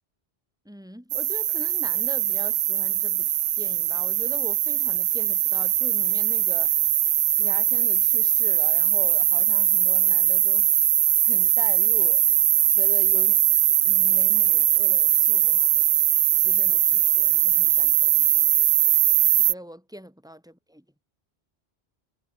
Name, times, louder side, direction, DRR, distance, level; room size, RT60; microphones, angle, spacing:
voice 1, 0.6-6.9 7.3-10.8 11.0-12.3 12.7-13.5 13.8-15.8 16.3-18.5 19.4-20.8, equal, 5° right, 7.6 m, -42 dB
sound 1, 1.1-19.5, right 12 dB, 75° right, 0.8 m, -21 dB
omnidirectional pair, 1.1 m